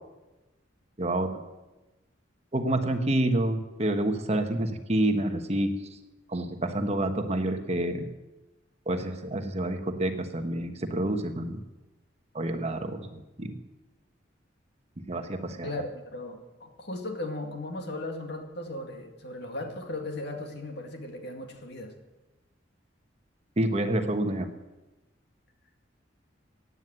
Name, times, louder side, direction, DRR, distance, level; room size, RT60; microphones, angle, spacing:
voice 1, 1.0-1.4 2.5-5.7 6.3-8.1 8.9-11.6 12.3-13.6 15.1-15.7 23.6-24.5, right 1 dB, 35° right, 7 dB, 1.2 m, -28 dB
voice 2, 15.6-21.9, left 1 dB, 60° left, 4 dB, 2.1 m, -37 dB
15.5 x 9.5 x 7.5 m, 1.1 s
head